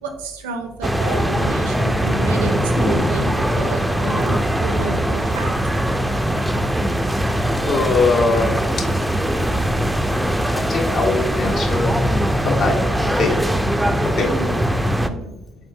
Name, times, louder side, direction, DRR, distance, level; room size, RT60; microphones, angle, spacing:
voice 1, 0.0-5.6 14.2-14.7 15.1-15.4, right 4 dB, 75° right, 5 dB, 0.4 m, -30 dB
sound 1, 0.8-15.1, equal, 5° right, 0.3 m, -21 dB
voice 2, 7.6-8.5 10.5-11.9 12.5-12.8 13.2-13.3 14.2-14.3, left 3 dB, 55° left, 1 dB, 0.8 m, -20 dB
3.7 x 3.5 x 2.2 m, 0.99 s
figure-of-eight pair, 50°, 0 cm